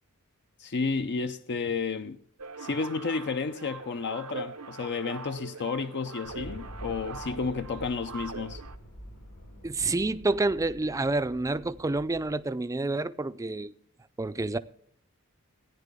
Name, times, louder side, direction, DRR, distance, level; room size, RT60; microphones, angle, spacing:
voice 1, 0.6-2.2 2.6-8.6, left 4 dB, 50° left, 0.5 m, -31 dB
sound 1, 2.4-8.8, right 4 dB, 85° right, 0.8 m, -42 dB
sound 2, 6.2-12.5, equal, 80° left, 4.9 m, -46 dB
voice 2, 9.6-13.7 14.2-14.6, right 2 dB, 15° right, 0.4 m, -28 dB
15.0 x 9.7 x 3.6 m
head